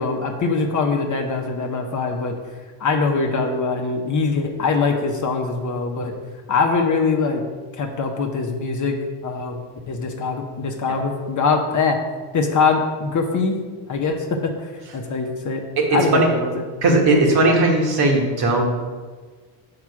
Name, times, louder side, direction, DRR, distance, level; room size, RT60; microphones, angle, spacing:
voice 1, 0.0-2.4 2.8-6.1 6.5-7.4 7.7-9.0 9.2-12.0 12.3-13.6 13.9-15.6 15.9-16.6, left 4 dB, 40° left, 3 dB, 0.9 m, -22 dB
voice 2, 15.8-16.3 16.8-18.7, right 2 dB, 50° right, 1 dB, 1.5 m, -17 dB
6.1 x 4.9 x 4.8 m, 1.4 s
supercardioid pair, 95°, 49 cm